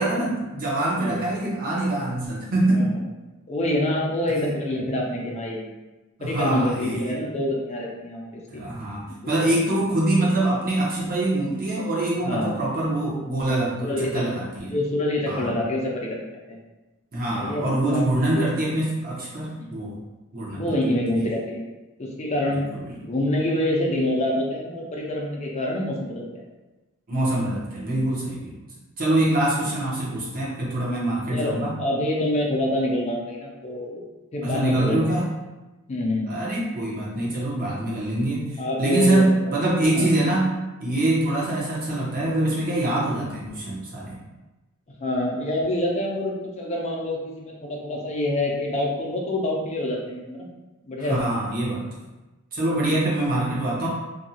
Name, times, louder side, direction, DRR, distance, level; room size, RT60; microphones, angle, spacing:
voice 1, 0.0-2.9 4.3-4.4 6.2-7.2 8.5-14.7 15.3-15.5 17.1-20.0 20.3-20.7 22.5-22.8 27.1-28.6 29.0-31.7 34.4-35.3 36.3-40.5 40.8-44.2 51.1-51.8 52.5-53.9, right 1 dB, 40° right, -6 dB, 0.8 m, -24 dB
voice 2, 2.7-3.0 3.5-5.7 6.2-8.6 9.1-9.4 12.2-12.5 13.8-14.3 14.7-16.6 17.3-18.4 19.6-19.7 20.5-21.6 22.0-22.6 23.0-26.4 31.3-34.0 34.3-35.1 35.9-36.3 38.6-39.5 39.9-40.1 45.0-50.5 50.8-51.2, left 1 dB, 30° left, -2 dB, 0.5 m, -26 dB
2.6 x 2.2 x 2.7 m, 1.1 s
head